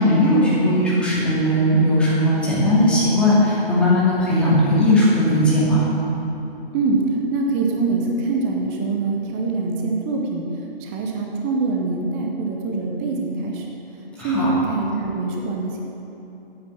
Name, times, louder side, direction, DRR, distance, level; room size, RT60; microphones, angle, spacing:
voice 1, 0.0-5.8 14.2-14.5, left 1 dB, 5° left, -10 dB, 2.5 m, -18 dB
voice 2, 7.3-10.4 10.8-13.6 14.2-15.8, right 3 dB, 15° right, 0 dB, 0.7 m, -24 dB
12.5 x 9.0 x 7.0 m, 2.9 s
hypercardioid pair, 160°, 31 cm